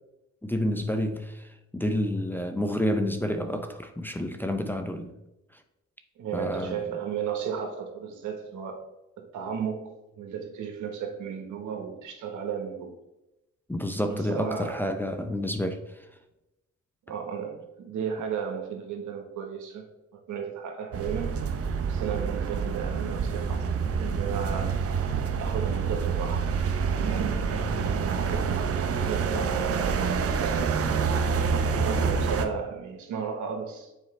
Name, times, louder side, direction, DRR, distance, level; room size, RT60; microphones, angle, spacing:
voice 1, 0.4-5.1 6.3-6.8 13.7-15.8, left 1 dB, 5° left, 5 dB, 0.5 m, -29 dB
voice 2, 6.2-8.8 9.2-13.0 14.1-14.8 17.1-21.3 21.9-24.8 25.4-26.5 27.0-28.5 28.9-31.0 31.7-33.9, right 7 dB, 75° right, 3 dB, 1.3 m, -35 dB
Door Open to Traffic, 20.9-32.5, right 5 dB, 50° right, 0.7 m, -27 dB
7.3 x 4.5 x 3.3 m, 0.93 s
cardioid pair, 90°, 30 cm